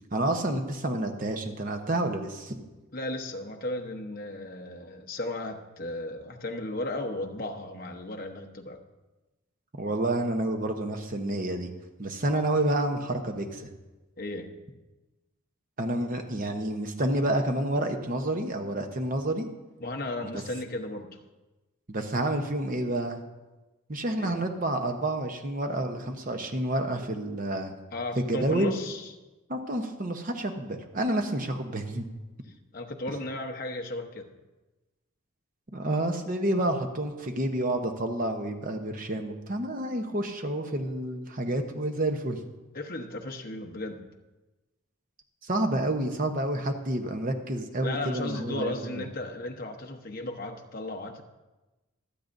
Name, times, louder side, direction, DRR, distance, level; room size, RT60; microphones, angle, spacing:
voice 1, 0.1-2.6 9.8-11.7 12.0-13.7 15.8-19.5 21.9-23.2 23.9-27.7 28.3-28.7 29.5-32.1 35.7-42.4 45.4-49.1, right 1 dB, 40° right, 5 dB, 0.9 m, -29 dB
voice 2, 2.9-8.8 14.2-14.5 19.8-21.2 24.2-24.4 27.9-29.1 32.7-34.3 42.7-44.0 47.8-51.2, left 2 dB, 40° left, 2 dB, 1.0 m, -35 dB
25.5 x 8.6 x 2.6 m, 1.1 s
head